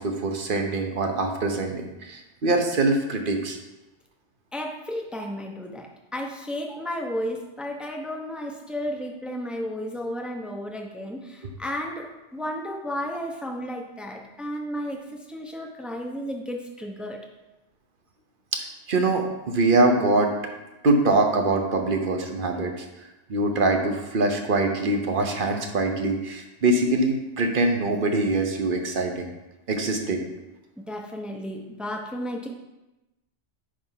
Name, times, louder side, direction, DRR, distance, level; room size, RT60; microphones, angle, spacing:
voice 1, 0.0-3.6 18.5-20.3 20.8-22.9 23.3-29.3 29.7-30.2, right 2 dB, 50° right, 4 dB, 1.0 m, -23 dB
voice 2, 4.5-17.2 30.9-32.5, equal, ahead, 1 dB, 0.7 m, -33 dB
9.9 x 3.4 x 5.7 m, 1.0 s
omnidirectional pair, 1.2 m